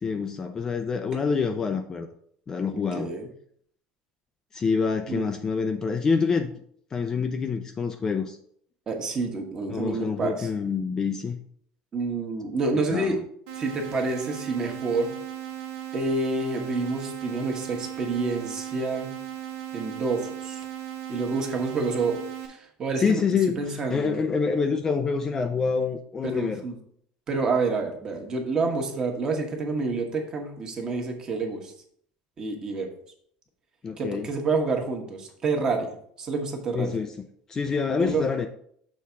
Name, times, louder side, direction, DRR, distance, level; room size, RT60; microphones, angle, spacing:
voice 1, 0.0-2.1 2.5-3.1 4.5-6.5 6.9-8.4 9.7-11.4 12.9-13.2 23.0-26.6 33.8-34.3 36.7-37.1 37.5-38.5, left 5 dB, 20° left, 6 dB, 0.4 m, -26 dB
voice 2, 2.7-3.3 5.1-5.3 8.9-10.5 11.9-13.2 13.6-15.1 15.9-19.1 19.7-20.6 21.1-22.2 22.5-23.2 23.6-24.2 26.2-26.7 27.3-31.7 32.4-32.9 34.0-36.9 38.0-38.2, right 3 dB, 30° right, 2 dB, 1.3 m, -28 dB
sound 1, 13.5-22.5, right 12 dB, 75° right, 1.5 m, -37 dB
6.5 x 3.5 x 5.6 m, 0.65 s
cardioid pair, 150°, 3 cm